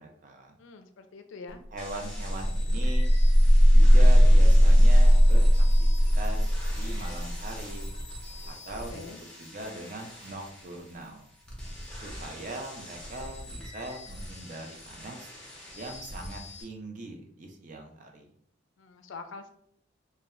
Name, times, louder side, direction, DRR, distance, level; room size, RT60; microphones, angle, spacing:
voice 1, 0.0-0.5 1.7-3.1 3.7-7.9 8.4-9.0 9.4-11.3 11.9-15.3 15.7-18.3, right 2 dB, 40° right, 2 dB, 0.4 m, -41 dB
voice 2, 0.6-1.6 8.7-9.2 18.8-19.5, left 4 dB, 70° left, 7 dB, 0.3 m, -45 dB
sound 1, 1.5-1.6 1.9-8.7, equal, 25° right, 0.8 m, -19 dB
sound 2, 1.8-16.6, left 1 dB, 5° left, 0.6 m, -43 dB
2.2 x 2.1 x 3.5 m, 0.67 s
head